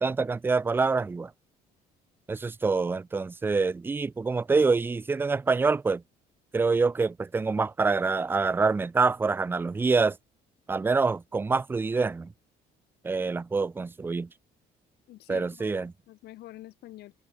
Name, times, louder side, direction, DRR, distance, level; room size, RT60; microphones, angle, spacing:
voice 1, 0.0-1.3 2.3-6.0 6.5-10.2 10.7-12.3 13.0-14.3 15.3-15.9, right 4 dB, 15° right, 0.3 m, -26 dB
voice 2, 15.1-17.1, left 15 dB, 75° left, 1.8 m, -47 dB
cardioid pair, 110°, 17 cm